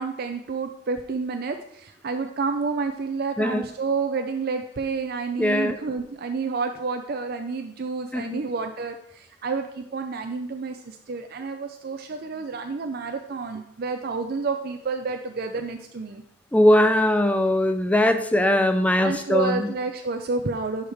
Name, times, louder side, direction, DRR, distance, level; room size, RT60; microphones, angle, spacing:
voice 1, 0.0-16.2 19.0-20.9, right 4 dB, 55° right, 6 dB, 0.5 m, -29 dB
voice 2, 5.4-5.8 8.1-8.4 16.5-19.7, left 1 dB, 5° left, 8 dB, 0.5 m, -20 dB
11.0 x 4.8 x 3.4 m, 0.76 s
head